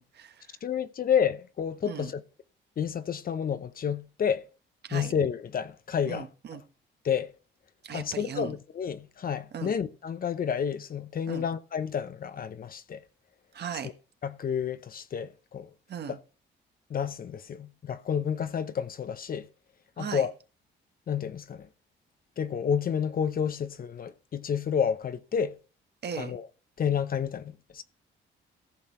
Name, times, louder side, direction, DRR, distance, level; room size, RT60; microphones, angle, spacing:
voice 1, 0.0-0.6 1.8-2.1 4.8-5.1 6.1-6.6 7.8-8.5 9.5-9.7 11.3-11.5 13.5-13.9 15.9-16.2 20.0-20.3 26.0-26.3, right 7 dB, 55° right, 1.3 m, -38 dB
voice 2, 0.6-2.2 2.8-4.4 4.9-6.3 7.0-7.3 7.9-13.0 14.2-15.7 16.1-16.2 16.9-19.5 20.0-20.3 21.1-21.7 22.4-25.6 26.2-26.5 26.8-27.8, left 7 dB, 45° left, 0.8 m, -30 dB
14.5 x 6.2 x 4.4 m
cardioid pair, 90°, 20 cm